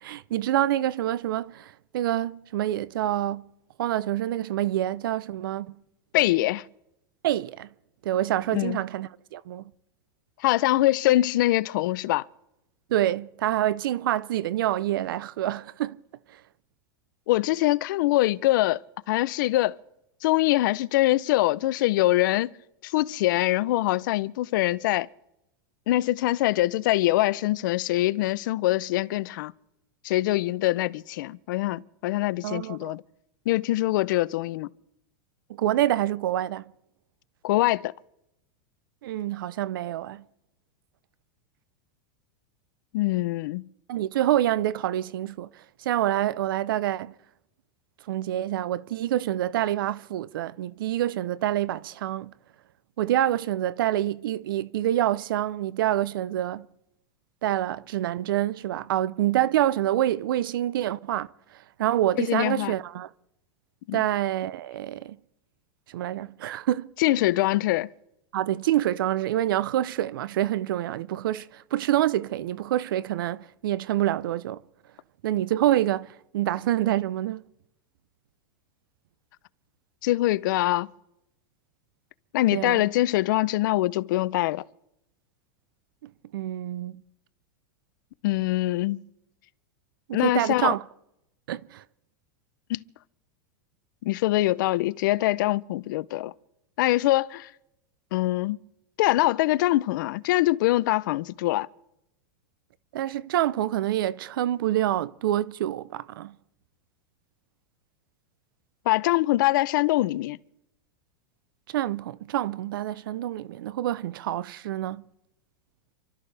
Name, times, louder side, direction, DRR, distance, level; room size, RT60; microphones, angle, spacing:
voice 1, 0.0-3.5 3.8-5.8 7.2-7.7 8.0-9.6 12.9-16.0 32.4-33.0 35.5-36.6 39.0-40.2 43.9-45.5 45.8-47.1 48.1-52.3 53.0-56.7 57.4-61.3 61.8-63.1 63.9-65.2 65.9-66.9 68.3-74.6 75.2-77.4 82.5-82.8 86.0-87.0 90.1-90.8 91.5-91.8 102.9-106.3 111.7-115.0, right 13 dB, 80° right, 0.6 m, -27 dB
voice 2, 6.1-6.6 8.5-8.8 10.4-12.3 17.3-18.8 19.1-19.8 20.2-22.5 22.8-25.1 25.9-29.5 30.0-33.0 33.5-34.7 37.4-37.9 42.9-43.7 62.2-62.7 63.9-64.0 67.0-67.9 80.0-80.9 82.3-84.6 88.2-89.0 90.1-90.7 92.7-92.8 94.0-96.3 96.8-97.5 98.1-98.6 99.0-101.7 108.9-110.4, left 17 dB, 65° left, 0.6 m, -23 dB
28.5 x 13.0 x 3.4 m
supercardioid pair, 140°, 11 cm